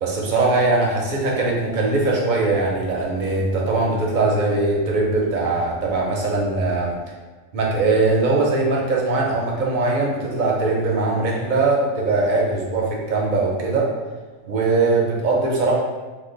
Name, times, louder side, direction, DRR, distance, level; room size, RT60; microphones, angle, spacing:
voice 1, 0.0-6.9 7.5-13.9 14.4-15.7, right 3 dB, 50° right, -2 dB, 0.6 m, -21 dB
2.9 x 2.1 x 3.8 m, 1.3 s
omnidirectional pair, 1.3 m